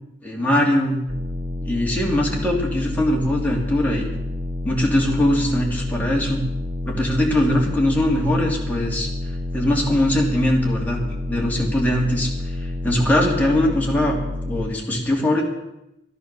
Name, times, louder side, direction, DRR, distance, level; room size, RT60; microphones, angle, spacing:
voice 1, 0.2-1.0 1.6-4.1 4.6-6.4 6.8-9.1 9.5-11.0 11.3-12.3 12.6-14.2 14.4-15.4, left 1 dB, 10° left, -3 dB, 2.9 m, -21 dB
sound 1, 1.1-14.7, left 2 dB, 40° right, 1.0 m, -29 dB
13.0 x 11.0 x 6.9 m, 0.88 s
head